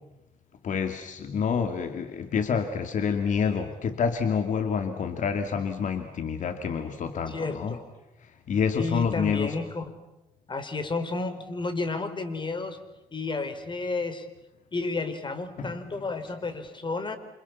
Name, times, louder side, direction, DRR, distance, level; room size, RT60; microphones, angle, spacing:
voice 1, 0.6-7.7 8.5-9.5 15.6-15.8, left 6 dB, 60° left, 7 dB, 2.7 m, -28 dB
voice 2, 7.3-7.8 8.8-9.9 10.5-12.8 13.1-14.3 14.7-17.2, left 3 dB, 35° left, 11 dB, 4.2 m, -31 dB
28.5 x 27.0 x 7.2 m, 0.96 s
cardioid pair, 80°, 15 cm